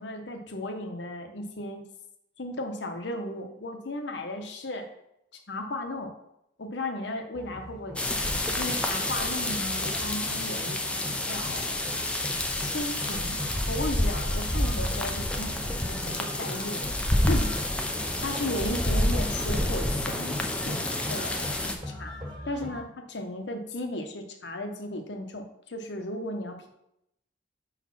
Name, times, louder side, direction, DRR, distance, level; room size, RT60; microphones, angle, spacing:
voice 1, 0.0-1.8 2.4-4.9 5.5-6.1 6.6-8.3 8.6-11.8 12.6-15.6 15.9-17.0 17.3-17.7 18.2-20.8 21.1-22.2 22.4-26.7, left 1 dB, 75° left, 5 dB, 1.0 m, -35 dB
sound 1, 7.3-22.8, left 1 dB, 20° right, 1.7 m, -41 dB
sound 2, 8.0-21.8, left 1 dB, 5° left, 0.5 m, -29 dB
5.1 x 4.1 x 5.9 m, 0.80 s
head